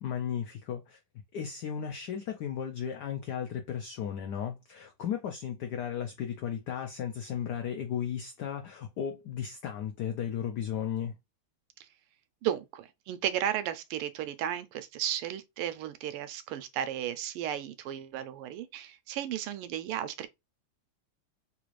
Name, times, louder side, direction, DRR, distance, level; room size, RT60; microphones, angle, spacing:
voice 1, 0.0-1.0 1.3-11.1, left 8 dB, 90° left, 0.9 m, -35 dB
voice 2, 12.4-20.3, right 10 dB, 85° right, 1.5 m, -34 dB
3.8 x 2.5 x 3.0 m
omnidirectional pair, 2.4 m